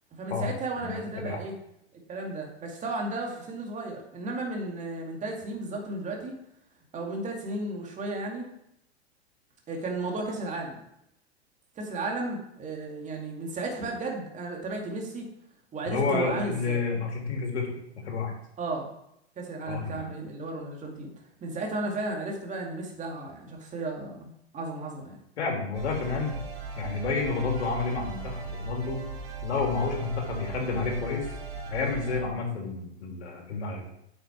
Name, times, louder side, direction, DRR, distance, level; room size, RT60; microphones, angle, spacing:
voice 1, 0.1-1.5 2.1-6.3 6.9-8.4 9.7-10.8 11.8-15.3 15.7-16.8 18.6-18.9 19.4-21.1 21.4-25.2, right 2 dB, 20° right, 0 dB, 2.5 m, -34 dB
voice 2, 0.8-1.4 15.9-17.7 18.0-18.3 19.7-20.1 25.4-26.4 26.8-29.0 29.4-31.3 31.7-33.9, left 4 dB, 80° left, 0 dB, 3.5 m, -30 dB
sound 1, 25.7-32.2, right 4 dB, 65° right, 3.5 m, -38 dB
9.2 x 6.7 x 4.7 m, 0.78 s
hypercardioid pair, 125°, 33 cm